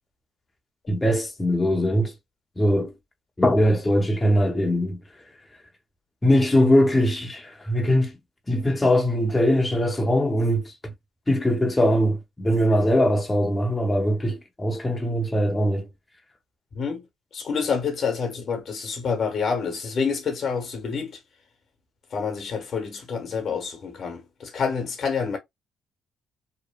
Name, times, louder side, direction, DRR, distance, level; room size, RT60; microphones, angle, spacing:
voice 1, 0.9-2.1 2.6-2.9 3.4-5.0 6.2-8.1 8.5-10.9 11.3-15.9, equal, 15° left, 0.6 m, -21 dB
voice 2, 16.7-17.1 17.3-21.2 22.1-25.4, left 5 dB, 60° left, 1.0 m, -28 dB
2.9 x 2.2 x 2.2 m
cardioid pair, 80°, 0 cm